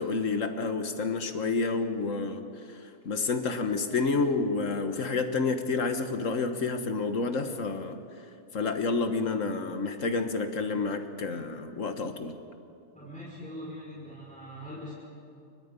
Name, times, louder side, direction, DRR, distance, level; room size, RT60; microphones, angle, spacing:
voice 1, 0.0-2.4 2.7-2.8 3.1-8.0 8.5-12.3, left 4 dB, 75° left, 8 dB, 1.8 m, -29 dB
voice 2, 12.9-14.9, equal, 5° left, -8 dB, 5.5 m, -42 dB
29.0 x 23.5 x 5.4 m, 2.5 s
omnidirectional pair, 1.4 m